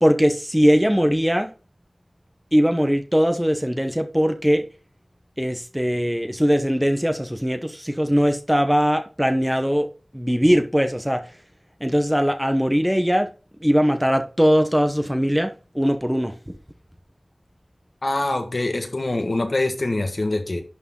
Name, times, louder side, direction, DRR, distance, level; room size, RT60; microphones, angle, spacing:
voice 1, 0.0-1.5 2.5-4.6 5.4-9.9 10.1-11.3 11.8-13.3 13.6-16.6, equal, 5° right, 0.9 m, -20 dB
voice 2, 18.0-20.6, left 2 dB, 60° left, 1.6 m, -24 dB
11.0 x 3.9 x 3.8 m
wide cardioid pair, 50°, 0 cm